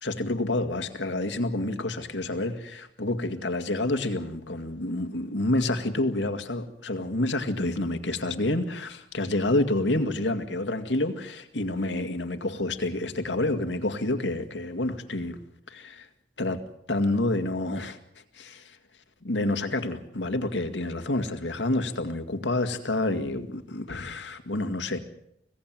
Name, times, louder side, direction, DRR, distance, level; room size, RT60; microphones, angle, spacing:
voice 1, 0.0-15.4 15.7-16.1 16.4-16.6 16.9-18.0 18.3-18.8 19.2-25.0, left 2 dB, 90° left, 8 dB, 2.1 m, -28 dB
26.0 x 17.0 x 7.6 m, 0.75 s
head